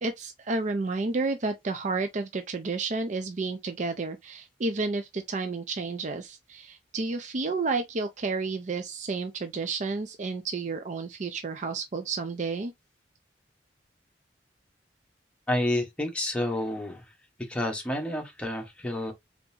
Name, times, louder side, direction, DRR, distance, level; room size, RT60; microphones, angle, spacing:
voice 1, 0.0-12.7, right 3 dB, 45° right, 0.5 m, -31 dB
voice 2, 15.5-17.0 17.5-19.1, left 1 dB, 5° left, 1.1 m, -29 dB
3.8 x 3.5 x 2.7 m
head